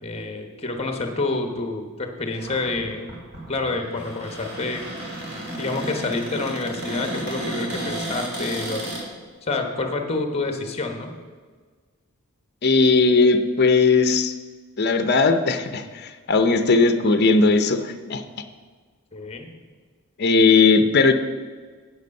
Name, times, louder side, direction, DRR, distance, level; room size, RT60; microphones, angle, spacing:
voice 1, 0.0-3.1 3.5-4.8 5.6-8.8 9.4-11.1 19.1-19.5, left 3 dB, 30° left, 4 dB, 1.1 m, -28 dB
Cupboard open or close, 2.3-9.0, right 1 dB, 45° right, 2.3 m, -33 dB
voice 2, 12.6-14.3 14.8-18.2 20.2-21.1, left 4 dB, 45° left, 9 dB, 0.6 m, -18 dB
8.6 x 8.1 x 5.3 m, 1.5 s
head